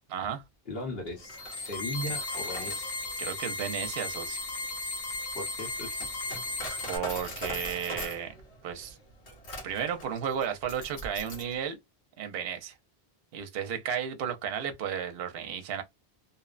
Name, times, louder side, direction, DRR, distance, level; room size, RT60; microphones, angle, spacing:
voice 1, 0.1-0.4 3.2-4.4 6.9-8.4 8.6-9.0 9.6-11.8 12.2-12.8 13.3-15.8, right 8 dB, 65° right, 0.8 m, -33 dB
voice 2, 0.7-1.3 1.7-2.8 5.3-6.0, left 1 dB, 65° left, 1.2 m, -37 dB
Coin (dropping), 1.1-11.6, left 1 dB, 85° left, 1.3 m, -42 dB
sound 1, 1.2-7.0, left 2 dB, 40° left, 0.6 m, -35 dB
2.8 x 2.1 x 2.4 m
omnidirectional pair, 1.1 m